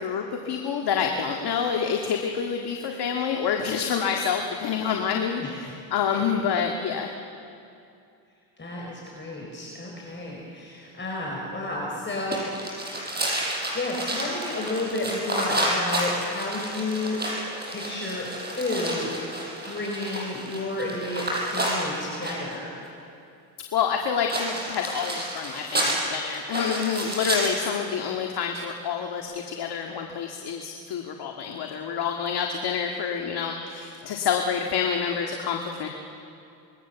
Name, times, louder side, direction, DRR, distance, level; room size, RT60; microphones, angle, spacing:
voice 1, 0.0-7.1 23.7-35.9, left 7 dB, 60° left, 2 dB, 1.9 m, -27 dB
voice 2, 5.4-5.7 6.1-6.3 8.6-12.5 13.7-17.2 17.7-22.7, left 2 dB, 25° left, -2 dB, 4.9 m, -31 dB
sound 1, 12.3-22.5 24.3-27.7, right 1 dB, 20° right, 7.3 m, -30 dB
26.0 x 21.0 x 7.0 m, 2.6 s
supercardioid pair, 85°, 44 cm